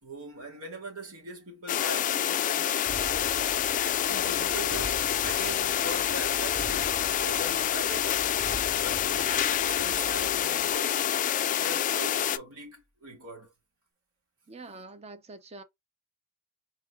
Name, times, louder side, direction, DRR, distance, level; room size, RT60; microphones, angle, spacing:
voice 1, 0.0-2.7 4.1-8.3 8.8-11.0 11.5-13.5 14.7-14.8, right 2 dB, 85° right, 2.5 m, -41 dB
sound 1, 1.7-12.4, left 10 dB, 35° left, 0.3 m, -27 dB
sound 2, 2.9-11.7, left 1 dB, ahead, 1.3 m, -45 dB
voice 2, 9.0-9.4 14.5-15.6, right 2 dB, 30° right, 0.7 m, -46 dB
4.5 x 3.1 x 2.3 m
head